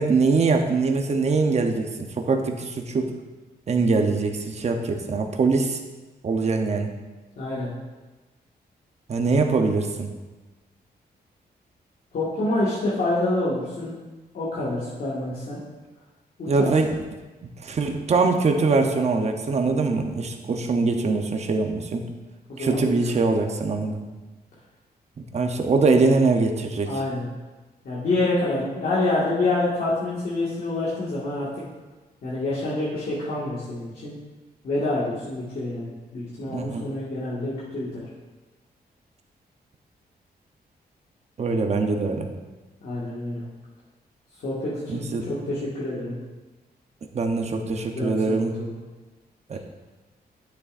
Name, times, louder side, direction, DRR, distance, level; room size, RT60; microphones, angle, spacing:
voice 1, 0.0-3.1 3.7-5.8 6.2-6.9 9.1-10.1 16.5-17.0 17.4-22.1 22.6-24.0 25.2-26.9 36.5-36.8 41.4-42.3 44.9-45.3 47.1-48.5 49.5-49.6, right 3 dB, 40° right, 4 dB, 0.8 m, -23 dB
voice 2, 7.4-7.7 12.1-14.0 14.3-15.6 16.4-16.7 22.5-23.0 26.9-27.3 27.8-31.6 32.2-34.1 34.6-38.0 42.8-43.4 44.4-46.2 47.9-48.8, left 2 dB, 65° left, -9 dB, 1.8 m, -27 dB
11.5 x 6.9 x 2.6 m, 1.2 s
wide cardioid pair, 145°, 17 cm